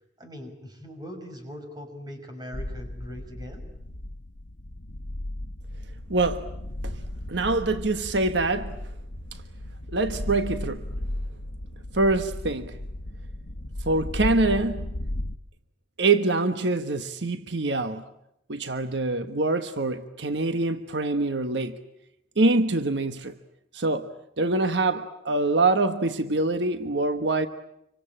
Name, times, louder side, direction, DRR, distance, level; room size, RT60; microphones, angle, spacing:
voice 1, 0.2-3.7, equal, 20° right, 5.6 m, -41 dB
sound 1, 2.5-15.3, left 1 dB, 85° left, 1.1 m, -35 dB
voice 2, 6.1-6.5 6.8-7.0 7.3-8.8 9.9-10.8 11.9-12.8 13.9-14.9 16.0-18.0 18.5-21.8 22.4-23.3 23.7-24.1 24.4-27.5, right 2 dB, 80° right, 1.3 m, -24 dB
27.0 x 24.5 x 8.8 m
head